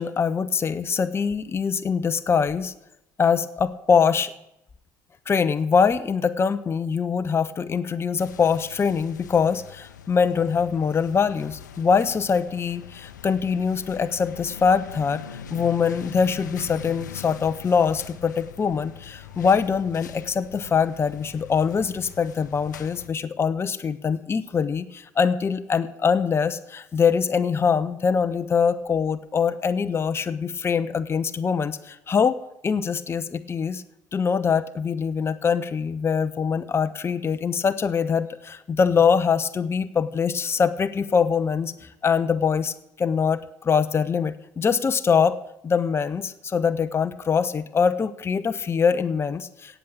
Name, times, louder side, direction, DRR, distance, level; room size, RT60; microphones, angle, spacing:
voice 1, 0.0-2.7 3.2-4.3 5.3-15.2 15.5-32.4 32.6-33.8 34.1-45.4 45.6-49.8, left 6 dB, 25° left, 12 dB, 0.7 m, -23 dB
sound 1, 8.2-23.1, left 9 dB, 80° left, 0.7 m, -42 dB
17.0 x 6.1 x 8.5 m, 0.85 s
figure-of-eight pair, 55°, 10 cm